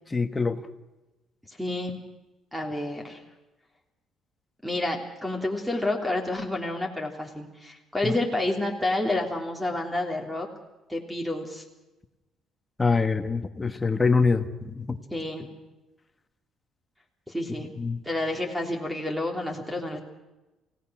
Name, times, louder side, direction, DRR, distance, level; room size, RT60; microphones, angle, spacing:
voice 1, 0.1-0.6 8.0-8.2 12.8-15.0 17.8-18.0, left 4 dB, 15° left, 6 dB, 1.8 m, -24 dB
voice 2, 1.6-2.0 2.5-3.2 4.6-10.5 10.9-11.6 15.1-15.5 17.3-17.7 18.0-20.0, left 1 dB, 5° right, 3 dB, 3.4 m, -29 dB
29.0 x 17.5 x 6.4 m, 1.1 s
cardioid pair, 120°, 0 cm